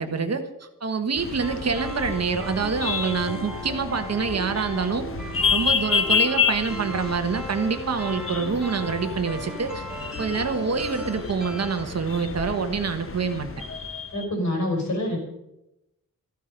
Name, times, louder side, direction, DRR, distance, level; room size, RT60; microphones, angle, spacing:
voice 1, 0.0-5.1 5.5-9.8 10.2-13.5, right 5 dB, 50° right, 7 dB, 1.4 m, -26 dB
sound 1, 1.2-14.2, left 6 dB, 40° left, 1.2 m, -30 dB
sound 2, 1.4-11.8, equal, ahead, 1.9 m, -38 dB
voice 2, 14.1-15.2, left 1 dB, 55° left, 1 dB, 5.1 m, -26 dB
14.0 x 14.0 x 5.3 m, 0.90 s
wide cardioid pair, 175°, 34 cm